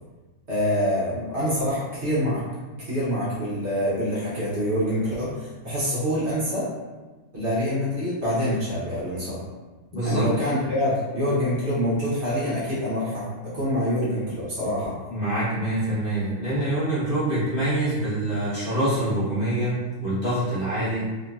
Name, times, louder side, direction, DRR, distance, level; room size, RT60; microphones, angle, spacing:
voice 1, 0.5-2.4 2.9-6.7 7.3-9.4 10.0-13.2 13.5-14.9, equal, 50° right, -9 dB, 1.1 m, -25 dB
voice 2, 9.9-10.3 15.1-21.1, right 1 dB, 40° left, -11 dB, 1.1 m, -25 dB
3.0 x 2.8 x 2.3 m, 1.2 s
omnidirectional pair, 1.5 m